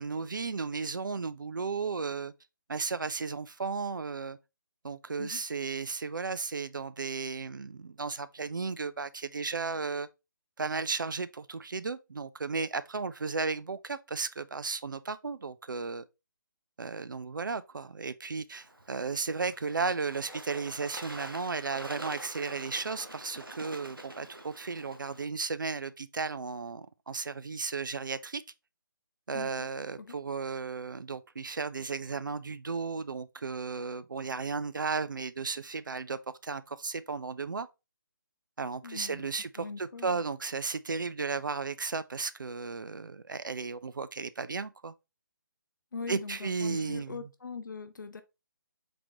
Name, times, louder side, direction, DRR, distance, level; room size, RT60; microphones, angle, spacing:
voice 1, 0.0-2.3 2.7-4.4 4.8-10.1 10.6-16.0 16.8-28.4 29.3-37.7 38.6-44.9 46.1-47.2, right 4 dB, 70° right, 0.4 m, -34 dB
Bird / Water, 18.5-25.2, right 1 dB, 90° right, 0.8 m, -46 dB
voice 2, 29.3-29.7 30.0-30.2 38.8-39.3 39.6-40.2 45.9-48.2, left 4 dB, 65° left, 0.5 m, -41 dB
3.8 x 2.9 x 3.6 m
figure-of-eight pair, 145°, 11 cm